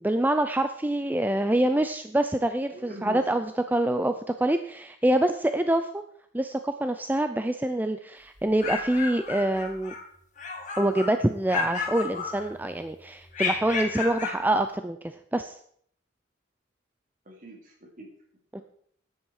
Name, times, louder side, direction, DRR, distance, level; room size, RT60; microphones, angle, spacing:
voice 1, 0.0-6.0 6.3-9.9 10.8-15.6 18.5-18.6, right 1 dB, 10° right, 8 dB, 0.5 m, -26 dB
voice 2, 2.7-3.2 17.2-18.1, left 1 dB, 45° right, 1 dB, 3.5 m, -43 dB
sound 1, 8.4-10.0 10.4-11.2 11.5-12.7 13.3-14.4, left 5 dB, 40° left, 2.6 m, -32 dB
13.5 x 10.5 x 4.8 m, 0.64 s
head